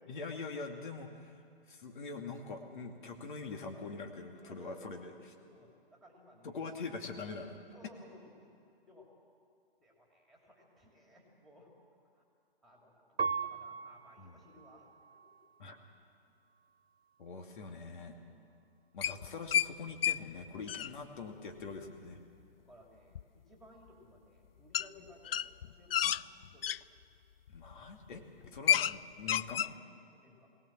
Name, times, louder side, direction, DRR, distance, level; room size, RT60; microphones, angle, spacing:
voice 1, 0.1-1.4 1.7-5.1 6.4-7.6 14.2-14.3 15.6-15.8 17.2-18.2 18.9-22.2 26.0-26.1 27.5-29.6, left 4 dB, 50° left, 4 dB, 2.5 m, -43 dB
voice 2, 4.3-6.6 7.7-8.5 8.9-9.1 9.8-11.7 12.1-12.2 12.6-15.2 18.0-18.5 19.1-19.2 20.7-20.9 21.6-21.9 22.6-26.0 26.5-26.7 30.1-30.5, left 1 dB, ahead, -2 dB, 3.1 m, -59 dB
Piano, 13.2-15.9 16.6-17.3, right 5 dB, 75° right, 0.9 m, -40 dB
sound 1, 19.0-19.7 20.0-20.2 20.5-20.9 23.2-23.3 24.7-24.9 25.3-26.8 27.5-27.7 28.1-28.2 28.4-29.0 29.2-29.7, left 10 dB, 70° left, 0.4 m, -30 dB
21.5 x 18.0 x 7.5 m, 2.3 s
hypercardioid pair, 145°, 31 cm